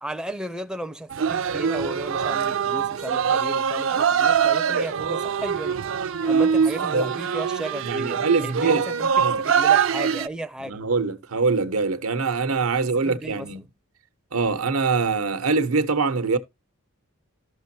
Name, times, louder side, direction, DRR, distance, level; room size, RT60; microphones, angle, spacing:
voice 1, 0.0-5.8 6.2-10.8 13.0-13.5, right 1 dB, 5° right, 0.4 m, -35 dB
sound 1, 1.1-10.3, right 7 dB, 65° right, 0.4 m, -23 dB
voice 2, 7.8-8.8 9.2-9.4 10.6-13.7 14.3-16.4, right 4 dB, 90° right, 0.9 m, -23 dB
13.0 x 5.9 x 2.7 m
head